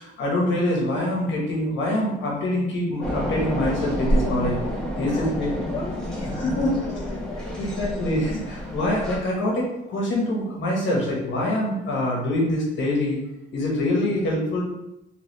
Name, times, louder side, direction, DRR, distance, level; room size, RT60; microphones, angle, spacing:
voice 1, 0.0-4.6 5.0-5.5 6.3-6.7 7.6-13.2 13.5-14.6, left 1 dB, 70° left, -2 dB, 1.2 m, -25 dB
sound 1, 3.0-9.2, equal, 5° left, 1.1 m, -28 dB
voice 2, 4.9-7.7, left 3 dB, 25° left, -3 dB, 0.8 m, -38 dB
3.3 x 3.2 x 3.2 m, 0.89 s
cardioid pair, 90°, 20 cm